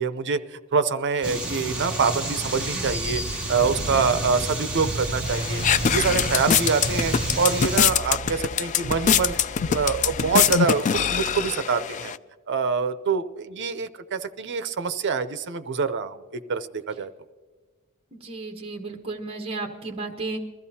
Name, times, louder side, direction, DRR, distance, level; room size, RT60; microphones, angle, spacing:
voice 1, 0.0-3.2 3.5-5.6 5.9-9.3 9.7-12.1 12.5-17.1, right 5 dB, 55° right, 11 dB, 0.7 m, -25 dB
sound 1, 1.2-7.8, right 2 dB, 5° right, 2.2 m, -30 dB
sound 2, 2.8-10.8, right 2 dB, 70° left, 3.7 m, -37 dB
sound 3, 5.3-12.2, left 8 dB, 35° left, 0.3 m, -24 dB
voice 2, 18.1-20.4, right 3 dB, 25° right, 3 dB, 1.0 m, -33 dB
22.0 x 14.0 x 2.8 m, 1.5 s
head